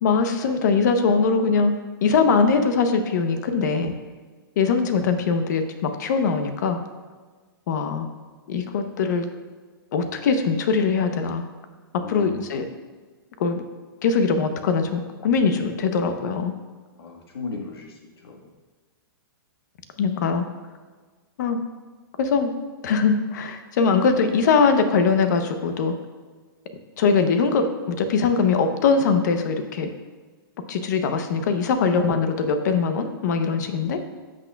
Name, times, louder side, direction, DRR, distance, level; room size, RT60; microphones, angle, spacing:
voice 1, 0.0-3.9 4.6-6.8 7.7-8.1 8.5-9.3 9.9-11.4 12.1-12.7 13.4-13.6 14.0-16.5 20.0-20.4 21.4-21.6 22.2-22.5 22.8-25.9 27.0-29.9 30.7-34.0, left 5 dB, 50° left, 8 dB, 0.8 m, -21 dB
voice 2, 12.0-12.4 17.0-18.5 33.8-34.0, left 4 dB, 90° left, 1 dB, 1.5 m, -36 dB
13.5 x 6.2 x 2.3 m, 1.4 s
hypercardioid pair, 165°, 12 cm